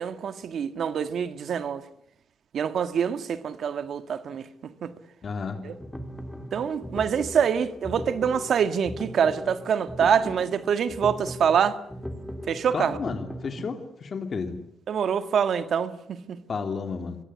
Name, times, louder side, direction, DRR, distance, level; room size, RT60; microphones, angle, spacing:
voice 1, 0.0-1.8 2.5-4.5 4.8-4.9 5.6-5.7 6.5-11.8 12.5-13.0 14.9-16.4, right 7 dB, 70° right, 1.7 m, -25 dB
voice 2, 5.2-5.6 12.7-14.6 16.5-17.2, left 5 dB, 50° left, 2.9 m, -32 dB
sound 1, 5.5-13.7, equal, 5° left, 3.5 m, -39 dB
25.0 x 22.5 x 9.9 m
cardioid pair, 95°, 0 cm